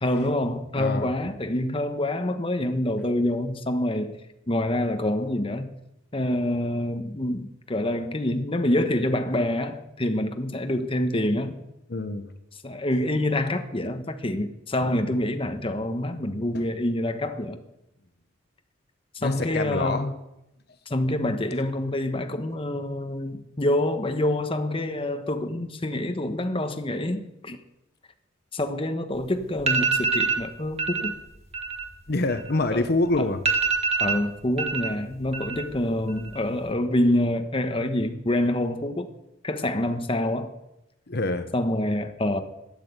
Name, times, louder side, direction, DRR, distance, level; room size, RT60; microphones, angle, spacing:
voice 1, 0.0-4.2 4.5-5.7 6.1-11.6 12.6-17.6 19.1-20.1 20.9-27.6 28.5-31.2 32.7-32.8 33.2-33.3 34.0-39.1 39.4-40.5 41.5-42.4, left 1 dB, 30° left, 1.1 m, -26 dB
voice 2, 0.7-1.1 11.9-12.3 16.5-16.7 19.2-20.1 32.1-33.4 41.1-41.5, left 2 dB, 55° left, 1.0 m, -26 dB
sound 1, 29.2-29.3 29.6-30.4 30.8-31.1 31.4-32.9 33.1-33.2 33.5-34.9 35.2-35.8 36.1-36.6, right 4 dB, 35° right, 1.8 m, -25 dB
13.0 x 9.1 x 8.1 m
head